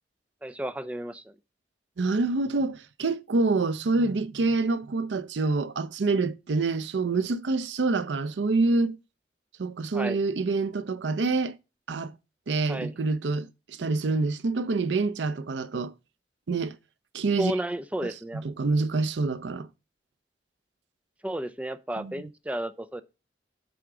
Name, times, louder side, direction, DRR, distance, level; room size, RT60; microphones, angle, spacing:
voice 1, 0.4-1.3 9.9-10.2 12.7-12.9 17.4-18.4 21.2-23.0, right 1 dB, 10° right, 0.4 m, -32 dB
voice 2, 2.0-9.0 9.6-11.6 11.9-12.1 12.5-15.9 16.5-16.8 17.1-17.5 18.0-19.7 22.0-22.1, right 3 dB, 90° right, 0.5 m, -26 dB
7.8 x 3.7 x 4.9 m
head